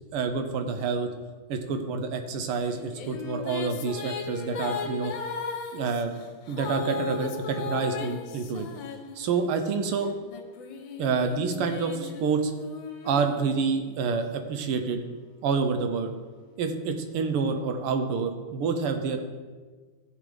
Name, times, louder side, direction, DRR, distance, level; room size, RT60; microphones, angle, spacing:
voice 1, 0.1-1.1 1.5-5.1 5.7-6.2 6.5-8.7 9.2-10.1 11.0-12.5 13.0-15.0 15.4-16.1 16.6-19.3, right 5 dB, 85° right, 6 dB, 1.8 m, -28 dB
sound 1, 2.7-9.6 10.3-14.0, left 5 dB, 65° left, 1.5 m, -36 dB
14.5 x 6.8 x 3.4 m, 1.4 s
omnidirectional pair, 2.4 m